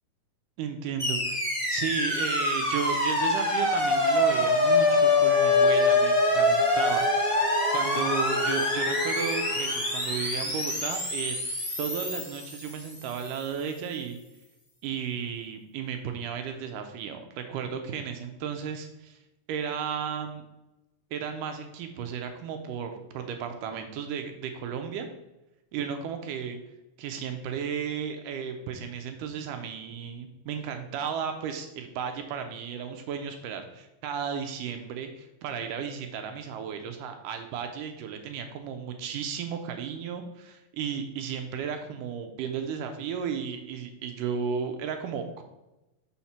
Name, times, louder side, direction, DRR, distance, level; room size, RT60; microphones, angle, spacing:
voice 1, 0.6-7.1 7.7-11.4 11.8-14.2 14.8-19.2 19.5-20.4 21.1-25.1 25.7-26.6 27.0-45.4, right 7 dB, 80° right, 6 dB, 1.9 m, -34 dB
sound 1, 1.0-13.2, left 2 dB, 15° left, 1.1 m, -25 dB
sound 2, 5.3-10.2, left 2 dB, 80° left, 3.1 m, -33 dB
5.7 x 4.2 x 5.8 m, 0.98 s
omnidirectional pair, 4.3 m